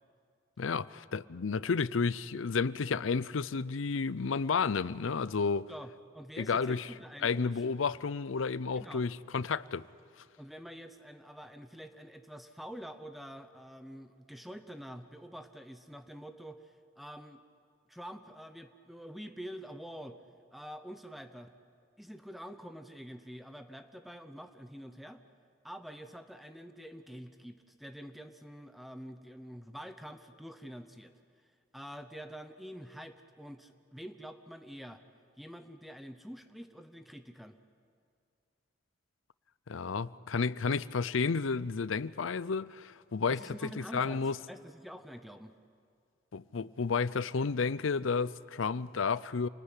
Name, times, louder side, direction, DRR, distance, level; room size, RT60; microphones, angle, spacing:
voice 1, 0.6-5.7 6.4-6.9 7.2-9.9 39.7-43.4 43.8-44.4 46.3-49.5, left 5 dB, 80° left, 0.6 m, -31 dB
voice 2, 5.7-7.6 8.8-9.0 10.4-17.4 17.9-20.2 20.5-21.5 22.0-25.2 25.6-31.1 31.7-35.0 35.4-37.6 43.3-44.2 44.5-45.5, equal, ahead, 0.8 m, -47 dB
27.5 x 20.0 x 9.9 m
head